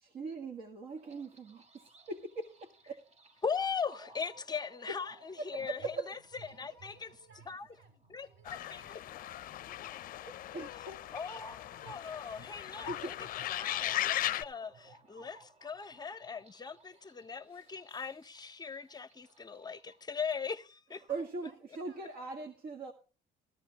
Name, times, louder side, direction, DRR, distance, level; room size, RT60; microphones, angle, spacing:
voice 1, 0.0-3.0 4.9-5.0 5.4-6.1 10.3-11.0 12.7-13.1 17.5-17.7 21.1-22.9, right 3 dB, 60° right, 1.7 m, -41 dB
sound 1, 1.0-20.0, right 3 dB, 40° right, 1.5 m, -60 dB
voice 2, 3.4-6.2 6.6-7.1 7.5-7.7 8.1-9.0 11.1-13.1 13.5-21.0, left 6 dB, 25° left, 0.7 m, -40 dB
voice 3, 4.6-4.9 5.2-5.9 6.4-10.4 10.9-12.9 16.9-17.7 21.1-22.7, right 3 dB, 85° right, 6.6 m, -63 dB
sound 2, 8.5-14.4, left 13 dB, 55° left, 0.5 m, -38 dB
14.5 x 14.0 x 3.0 m
cardioid pair, 110°, 17 cm